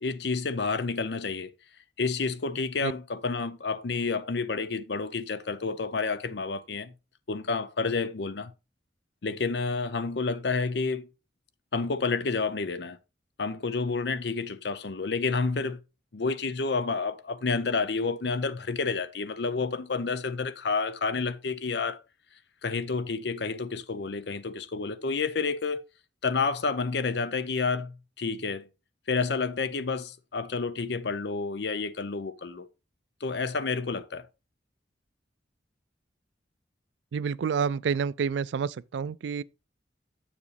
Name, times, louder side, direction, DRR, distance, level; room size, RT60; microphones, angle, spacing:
voice 1, 0.0-1.5 2.0-6.9 7.3-8.5 9.2-11.1 11.7-13.0 13.4-15.8 16.1-22.0 22.6-25.8 26.2-28.7 29.1-32.7 33.2-34.3, left 4 dB, 65° left, 0.6 m, -29 dB
voice 2, 37.1-39.4, right 6 dB, 75° right, 0.3 m, -29 dB
7.2 x 7.0 x 3.3 m
head